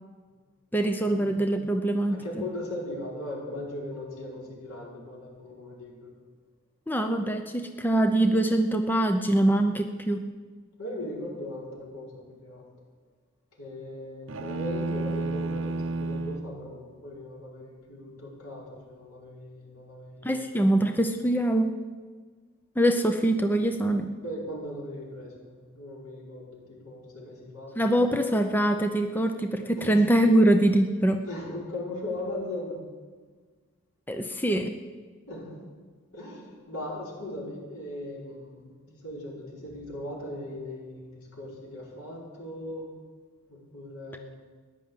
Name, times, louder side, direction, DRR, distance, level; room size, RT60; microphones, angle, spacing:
voice 1, 0.7-2.2 6.9-10.3 20.2-21.7 22.8-24.1 27.8-31.2 34.1-34.8, right 1 dB, 10° left, 6 dB, 0.6 m, -23 dB
voice 2, 2.1-6.1 10.8-12.7 13.6-20.4 24.2-27.7 29.8-29.9 31.2-32.8 35.3-35.6 36.1-38.7 39.0-42.9 43.5-44.3, left 1 dB, 90° left, -4 dB, 5.1 m, -38 dB
sound 1, 14.3-16.5, right 3 dB, 70° right, 0.7 m, -31 dB
14.5 x 10.5 x 7.8 m, 1.5 s
head